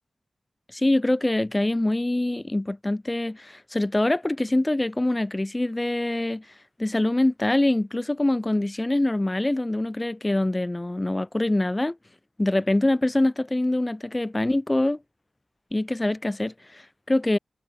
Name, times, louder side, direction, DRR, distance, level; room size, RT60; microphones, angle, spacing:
voice 1, 0.7-6.4 6.8-12.0 12.4-15.0 15.7-17.4, left 1 dB, 20° left, 1.2 m, -24 dB
wide cardioid pair, 105°, 0 cm